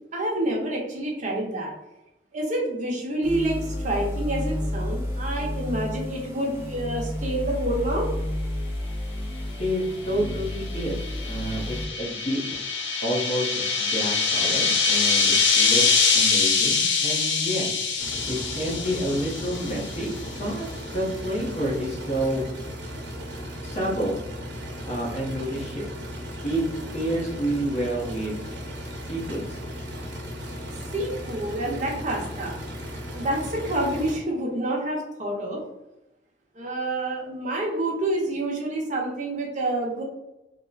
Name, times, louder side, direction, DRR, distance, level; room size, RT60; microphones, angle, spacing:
voice 1, 0.1-1.7 2.3-8.1 30.9-32.6 33.1-35.6 36.5-40.0, right 1 dB, 45° right, -2 dB, 0.8 m, -28 dB
sound 1, 3.2-11.9, left 1 dB, 15° right, 0.7 m, -31 dB
voice 2, 9.6-12.4 13.0-13.5 13.8-15.8 16.1-17.7 18.3-22.4 23.6-24.1 24.9-25.9 26.4-26.6 26.9-28.4 29.1-29.6, right 1 dB, 40° left, -3 dB, 1.0 m, -29 dB
sound 2, 10.3-20.1, left 5 dB, 85° left, 0.6 m, -24 dB
sound 3, 18.0-34.2, equal, 80° right, 0.9 m, -36 dB
3.0 x 2.1 x 3.9 m, 0.94 s
head